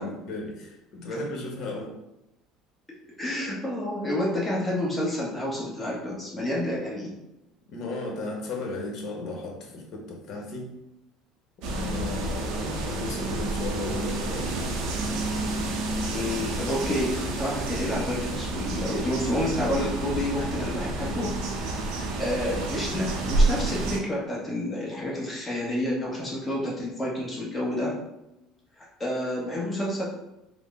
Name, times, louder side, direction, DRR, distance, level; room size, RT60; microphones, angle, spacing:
voice 1, 0.0-2.0 7.7-10.7 11.6-14.8, left 2 dB, 55° left, 0 dB, 1.0 m, -35 dB
voice 2, 3.2-7.2 16.1-21.3 21.6-21.7 22.2-28.0 28.8-30.0, left 1 dB, 10° left, -5 dB, 1.0 m, -29 dB
sound 1, 11.6-24.0, right 2 dB, 70° right, 0.7 m, -29 dB
3.5 x 2.1 x 3.6 m, 0.93 s
supercardioid pair, 110°, 0 cm